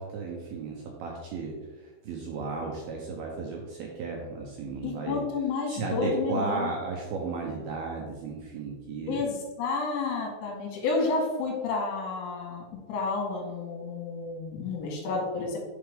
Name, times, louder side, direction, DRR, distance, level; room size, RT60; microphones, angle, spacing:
voice 1, 0.0-5.2 5.7-9.3, right 4 dB, 80° right, 0 dB, 2.3 m, -34 dB
voice 2, 4.8-6.7 9.1-12.6 12.9-15.6, left 4 dB, 80° left, -1 dB, 3.8 m, -30 dB
9.5 x 4.5 x 3.5 m, 1.3 s
omnidirectional pair, 5.3 m